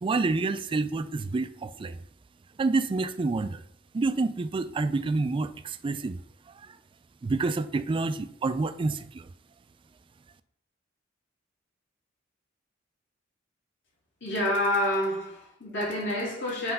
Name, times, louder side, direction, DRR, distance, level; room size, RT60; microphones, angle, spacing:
voice 1, 0.0-2.0 2.6-3.6 3.9-6.2 6.5-6.8 7.2-9.3, right 3 dB, 25° right, 0.3 m, -28 dB
voice 2, 14.2-16.7, left 1 dB, 65° left, 2.8 m, -28 dB
7.7 x 3.3 x 5.4 m
head